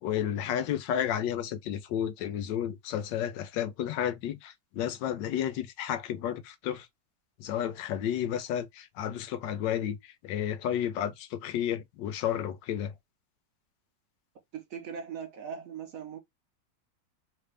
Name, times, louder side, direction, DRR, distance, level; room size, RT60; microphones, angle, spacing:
voice 1, 0.0-6.9 7.4-12.9, left 10 dB, 90° left, 1.3 m, -32 dB
voice 2, 14.5-16.2, right 7 dB, 60° right, 0.9 m, -40 dB
3.2 x 2.6 x 3.3 m
omnidirectional pair, 1.9 m